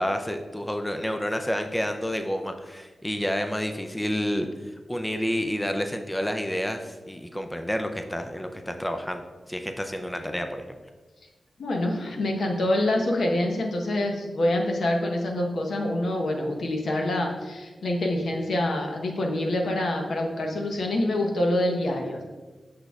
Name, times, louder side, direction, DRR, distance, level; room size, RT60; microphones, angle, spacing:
voice 1, 0.0-10.8, equal, 10° left, 6 dB, 0.3 m, -29 dB
voice 2, 11.6-22.2, left 1 dB, 80° left, 1 dB, 0.9 m, -26 dB
6.5 x 6.2 x 2.3 m, 1.3 s
wide cardioid pair, 135°, 0 cm